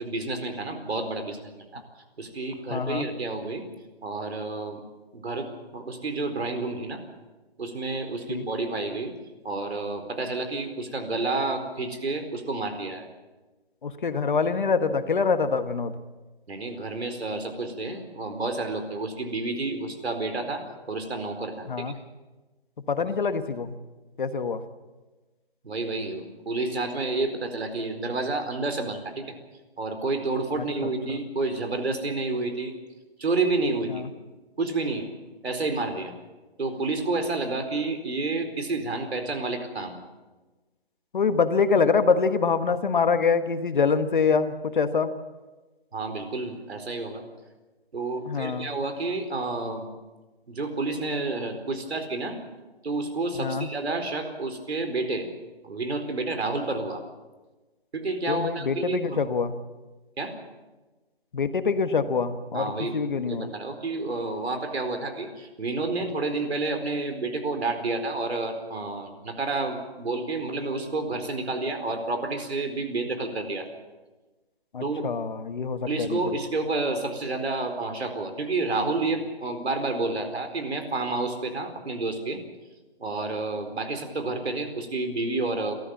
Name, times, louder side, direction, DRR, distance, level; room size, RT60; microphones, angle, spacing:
voice 1, 0.0-1.8 2.2-3.6 4.0-4.8 5.1-7.0 7.6-9.1 9.4-13.1 16.5-21.9 25.6-29.2 29.8-32.7 33.2-34.0 34.6-35.1 35.4-36.1 36.6-40.0 45.9-47.2 47.9-49.9 50.5-52.4 52.8-55.3 55.6-57.0 57.9-59.2 60.2-60.3 62.5-63.0 63.2-73.7 74.8-75.1 75.9-82.4 83.0-85.7, right 3 dB, 80° right, 7 dB, 4.4 m, -30 dB
voice 2, 2.7-3.1 8.3-8.4 13.8-15.9 21.7-22.0 22.9-23.7 24.2-24.6 30.6-31.2 33.9-34.1 41.1-45.1 48.2-48.7 53.4-53.7 58.3-59.5 61.3-63.5 74.7-76.3, left 5 dB, 50° left, 10 dB, 1.4 m, -25 dB
30.0 x 13.5 x 7.2 m, 1.2 s
hypercardioid pair, 170°, 32 cm